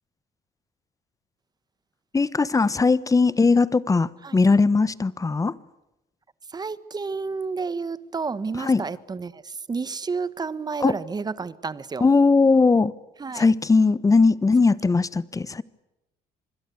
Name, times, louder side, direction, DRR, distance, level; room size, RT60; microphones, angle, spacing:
voice 1, 2.1-5.6 8.6-8.8 10.8-11.0 12.0-12.9 13.3-15.6, left 4 dB, 20° left, 1.1 m, -19 dB
voice 2, 6.5-12.0 13.2-13.5, right 4 dB, 25° right, 1.3 m, -30 dB
26.0 x 21.5 x 8.3 m
cardioid pair, 110°, 17 cm